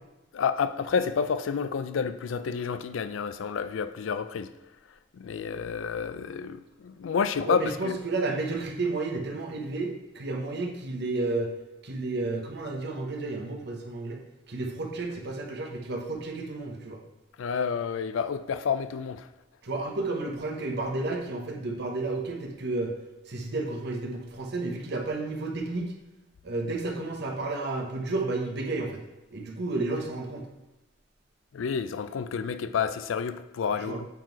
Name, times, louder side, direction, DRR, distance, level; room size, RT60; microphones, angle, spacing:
voice 1, 0.3-4.5 5.1-8.0 17.4-19.3 31.5-34.1, left 6 dB, 85° left, 0.4 m, -29 dB
voice 2, 7.5-11.5 11.8-14.2 14.5-17.0 19.6-22.9 23.3-25.9 26.4-29.0 29.3-30.5 33.8-34.0, right 2 dB, 60° right, 1.0 m, -31 dB
7.4 x 3.8 x 4.6 m
head